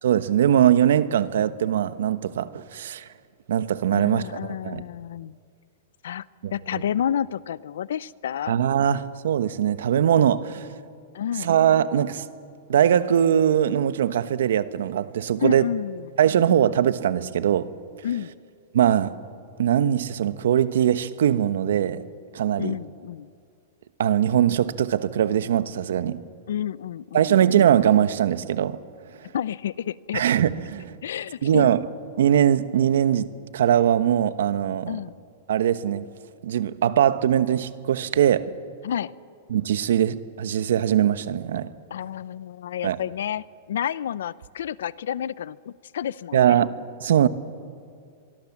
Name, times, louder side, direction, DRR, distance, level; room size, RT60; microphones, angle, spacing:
voice 1, 0.0-3.0 3.5-4.8 6.4-6.8 8.5-10.7 11.4-12.2 12.7-15.6 16.2-17.7 18.7-19.1 19.6-22.0 22.3-22.7 24.0-26.2 27.1-28.8 30.1-31.0 31.4-31.8 32.2-34.9 35.5-36.1 36.4-38.5 39.5-41.7 42.8-43.0 46.3-47.3, right 10 dB, 80° right, 1.2 m, -21 dB
voice 2, 3.9-5.4 6.0-6.3 6.5-8.6 11.1-11.5 15.4-16.1 18.0-18.3 22.6-23.3 26.5-27.4 29.3-30.2 31.0-31.7 34.9-35.1 38.8-39.1 41.9-46.6, left 9 dB, 85° left, 0.6 m, -30 dB
24.5 x 24.0 x 7.4 m
supercardioid pair, 150°, 0 cm